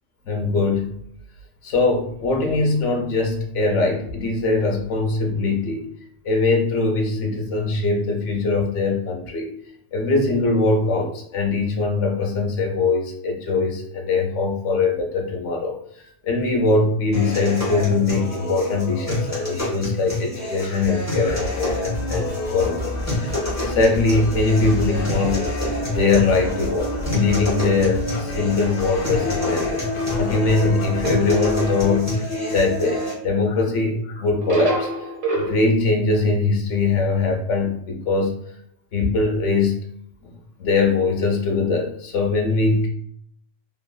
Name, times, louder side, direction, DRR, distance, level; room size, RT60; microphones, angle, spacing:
voice 1, 0.3-1.0 1.6-5.9 6.2-9.5 9.9-15.7 16.2-23.3 23.6-25.5 25.9-29.8 30.2-34.9 35.3-38.4 38.9-39.8 40.6-42.9, left 3 dB, 75° left, 2 dB, 1.0 m, -22 dB
sound 1, 17.1-33.1, left 1 dB, 15° left, 0.9 m, -27 dB
sound 2, 21.2-32.0, left 1 dB, 40° left, 0.8 m, -32 dB
sound 3, 31.0-32.1 34.4-35.5, equal, 90° right, 1.1 m, -26 dB
2.9 x 2.6 x 2.2 m, 0.67 s
omnidirectional pair, 1.3 m